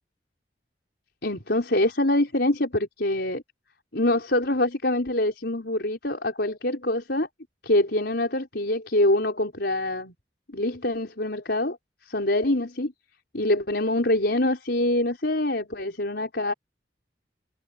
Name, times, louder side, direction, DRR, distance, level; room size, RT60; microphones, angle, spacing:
voice 1, 1.2-3.4 3.9-7.3 7.6-10.1 10.5-11.8 12.1-12.9 13.3-16.5, left 1 dB, 70° left, 4.7 m, -25 dB
head